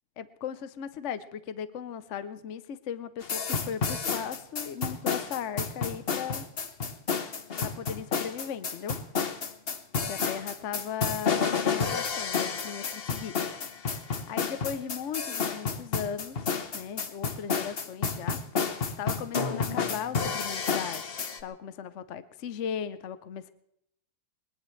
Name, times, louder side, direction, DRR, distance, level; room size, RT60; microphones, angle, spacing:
voice 1, 0.2-6.5 7.6-9.0 10.1-13.4 14.0-18.4 18.8-23.5, left 8 dB, 65° left, 13 dB, 0.7 m, -37 dB
sound 1, 3.2-21.4, left 5 dB, 40° left, 0.9 m, -30 dB
sound 2, 10.1-10.6, left 2 dB, 20° left, 2.3 m, -50 dB
22.0 x 20.5 x 3.2 m, 0.76 s
omnidirectional pair, 2.3 m